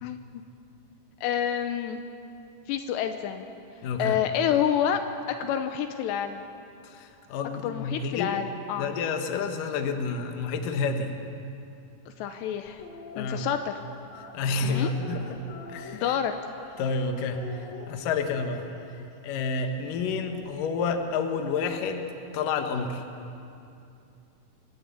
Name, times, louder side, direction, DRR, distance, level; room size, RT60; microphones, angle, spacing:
voice 1, 1.2-2.0 2.7-3.5 4.0-5.0 5.4-6.4 7.6-8.9 12.2-12.8 13.2-13.7 14.6-14.9 15.9-16.3, left 9 dB, 80° left, 7 dB, 2.9 m, -28 dB
voice 2, 3.8-4.2 6.8-8.3 8.8-11.1 13.1-13.5 14.3-15.4 15.7-16.2 16.8-18.7 19.2-23.0, left 4 dB, 60° left, 5 dB, 2.5 m, -29 dB
sound 1, 12.7-13.2 14.0-16.9 17.3-18.8 20.0-21.3, left 4 dB, 45° left, 3.0 m, -44 dB
25.5 x 14.5 x 8.3 m, 2.6 s
omnidirectional pair, 5.1 m